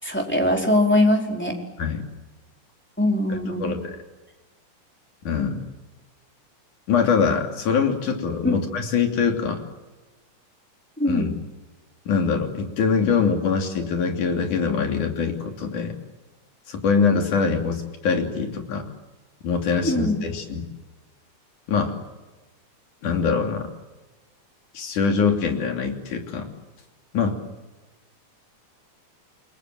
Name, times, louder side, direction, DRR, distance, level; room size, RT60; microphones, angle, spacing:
voice 1, 0.0-1.5 3.0-3.8 8.4-8.6 11.0-11.3 19.8-20.2, left 1 dB, 5° left, 1 dB, 4.4 m, -21 dB
voice 2, 3.6-4.0 5.2-5.6 6.9-9.6 11.1-11.3 12.1-16.0 16.7-18.9 19.4-20.7 21.7-21.9 23.0-23.7 24.7-26.5 27.1-27.4, left 5 dB, 80° left, 4 dB, 4.5 m, -23 dB
29.0 x 22.5 x 7.7 m, 1.1 s
omnidirectional pair, 3.5 m